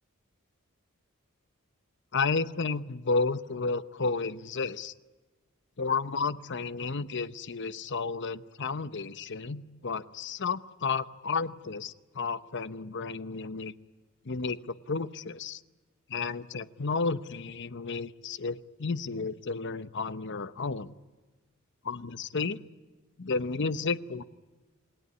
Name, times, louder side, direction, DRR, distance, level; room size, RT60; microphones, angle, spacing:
voice 1, 2.1-4.9 5.8-13.7 14.2-15.6 16.1-20.9 21.8-22.6 23.2-24.2, left 4 dB, 55° left, 14 dB, 0.9 m, -32 dB
28.0 x 20.0 x 9.7 m, 1.2 s
head